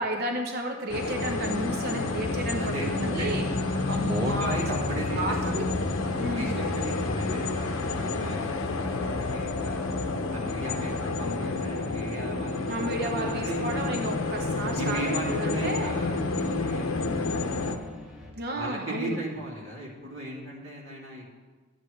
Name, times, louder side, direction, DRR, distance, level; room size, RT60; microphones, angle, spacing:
voice 1, 0.0-3.5 3.9-4.9 5.2-5.4 6.2-6.5 12.7-15.9 18.4-19.2, right 1 dB, 50° right, 2 dB, 0.8 m, -32 dB
sound 1, 0.9-17.8, left 3 dB, 85° left, 0.8 m, -29 dB
voice 2, 2.6-5.7 6.3-9.9 10.3-12.7 13.0-13.9 14.7-17.3 18.5-21.2, right 1 dB, 65° right, -6 dB, 3.0 m, -36 dB
sound 2, 3.5-18.3, left 1 dB, ahead, 1.7 m, -48 dB
13.0 x 8.0 x 3.3 m, 1.4 s
head